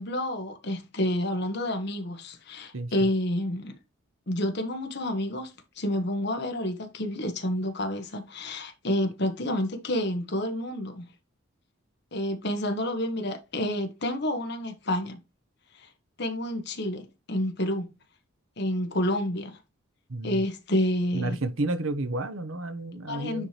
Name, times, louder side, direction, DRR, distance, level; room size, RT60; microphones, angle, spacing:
voice 1, 0.0-3.8 4.3-11.0 12.1-15.2 15.8-15.9 16.2-17.9 18.6-19.6 20.2-21.4 23.1-23.5, left 1 dB, 55° left, 1.5 m, -29 dB
voice 2, 20.1-20.4 21.1-23.5, right 2 dB, 80° right, 1.1 m, -31 dB
9.7 x 4.6 x 3.4 m
head